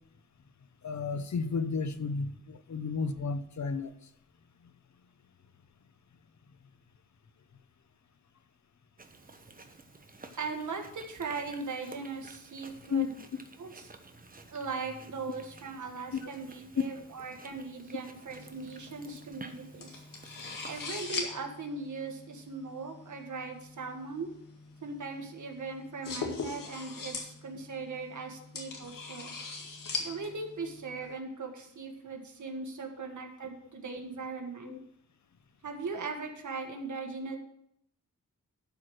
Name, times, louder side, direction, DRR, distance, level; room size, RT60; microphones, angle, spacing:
voice 1, 0.8-3.9 12.9-13.1 16.1-16.3 34.6-34.8, left 5 dB, 60° left, 11 dB, 0.8 m, -32 dB
Chewing mastication, 9.0-21.1, right 3 dB, 25° right, 1.0 m, -52 dB
voice 2, 10.4-13.2 13.6-13.7 14.5-20.0 20.6-24.3 24.8-29.3 30.0-34.8 35.6-37.4, right 4 dB, 65° right, 3 dB, 1.7 m, -39 dB
sound 1, 18.3-31.1, left 4 dB, 80° left, 1.9 m, -42 dB
12.0 x 4.8 x 6.3 m, 0.75 s
wide cardioid pair, 90°, 32 cm